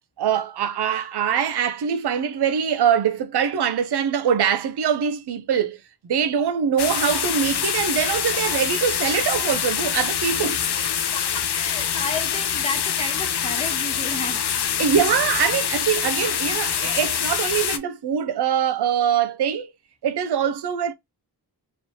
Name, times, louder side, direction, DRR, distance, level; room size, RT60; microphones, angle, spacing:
voice 1, 0.2-5.8 6.1-10.6 14.8-19.7 20.0-20.9, right 8 dB, 75° right, 0.5 m, -23 dB
sound 1, 6.8-17.8, left 8 dB, 75° left, 0.5 m, -25 dB
voice 2, 10.4-10.8 11.1-14.4, left 2 dB, 15° left, 1.0 m, -33 dB
3.1 x 2.9 x 2.6 m
wide cardioid pair, 65°, 40 cm